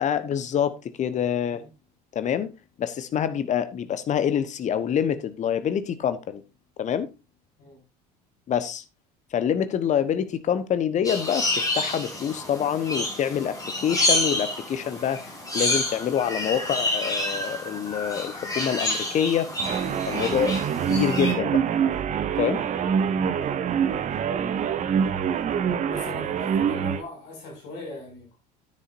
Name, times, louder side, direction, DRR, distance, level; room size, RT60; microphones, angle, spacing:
voice 1, 0.0-1.6 2.1-2.5 2.8-6.4 6.8-7.1 8.5-8.8 9.3-19.5 20.1-20.6 20.9-21.6 22.4-22.6, left 9 dB, 35° left, 1.2 m, -26 dB
sound 1, 11.0-21.3, left 1 dB, 15° left, 4.7 m, -29 dB
sound 2, 19.6-27.0, right 7 dB, 35° right, 1.0 m, -25 dB
voice 2, 25.8-28.4, left 2 dB, 55° left, 6.8 m, -40 dB
11.0 x 9.8 x 2.7 m
figure-of-eight pair, 65°, 21 cm